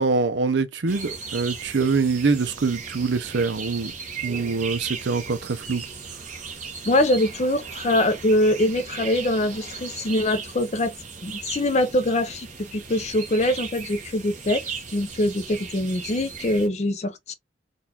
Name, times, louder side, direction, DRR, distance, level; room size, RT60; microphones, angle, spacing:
voice 1, 0.0-3.9 4.2-5.8, right 4 dB, 65° right, 0.6 m, -24 dB
sound 1, 0.9-16.7, right 5 dB, 40° right, 1.0 m, -37 dB
voice 2, 6.8-10.9 11.2-14.6 14.9-17.3, left 1 dB, 35° left, 0.5 m, -23 dB
3.8 x 2.4 x 2.7 m
head